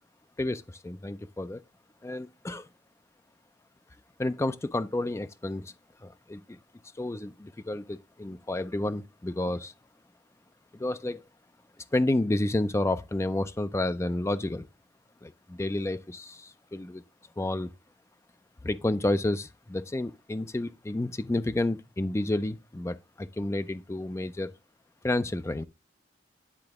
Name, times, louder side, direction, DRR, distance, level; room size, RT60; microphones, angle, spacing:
voice 1, 0.4-1.6 2.0-2.7 4.2-5.7 6.0-6.6 7.0-9.7 10.7-11.2 11.9-14.7 15.2-17.0 17.4-17.7 18.6-24.5 25.0-25.6, left 1 dB, 15° left, 0.3 m, -30 dB
9.8 x 3.9 x 3.4 m
head